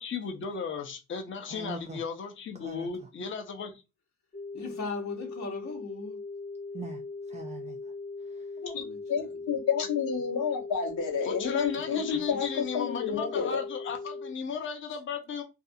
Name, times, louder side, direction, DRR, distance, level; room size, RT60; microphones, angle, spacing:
voice 1, 0.0-3.7 11.2-15.4, left 6 dB, 40° left, 0.7 m, -35 dB
voice 2, 1.4-2.0 2.5-3.1 6.7-7.9 8.2-8.6, right 4 dB, 25° right, 0.4 m, -43 dB
sound 1, 4.3-14.3, left 3 dB, 10° left, 1.0 m, -40 dB
voice 3, 4.5-6.2 8.7-9.3 11.7-11.8 12.3-12.4 13.4-13.5, left 3 dB, 65° left, 1.1 m, -39 dB
voice 4, 9.1-13.6, left 6 dB, 90° left, 1.2 m, -30 dB
2.6 x 2.4 x 2.6 m
cardioid pair, 90°, 30 cm